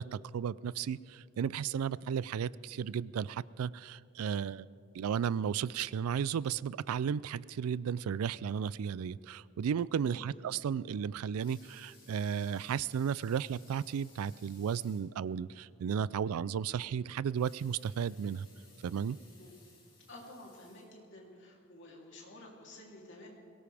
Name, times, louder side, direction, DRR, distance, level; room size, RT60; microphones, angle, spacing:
voice 1, 0.0-4.7 4.9-18.5 18.8-19.2, right 7 dB, 90° right, 20 dB, 0.3 m, -34 dB
voice 2, 9.9-10.2 19.4-19.5 20.1-23.3, left 1 dB, 55° left, -2 dB, 3.1 m, -51 dB
Water tap faucet / Sink (filling or washing) / Liquid, 11.4-15.1 15.6-15.7 16.0-16.1 17.2-21.3 21.9-22.0, left 3 dB, 25° left, 4.3 m, -61 dB
22.0 x 18.0 x 3.4 m, 2.8 s
head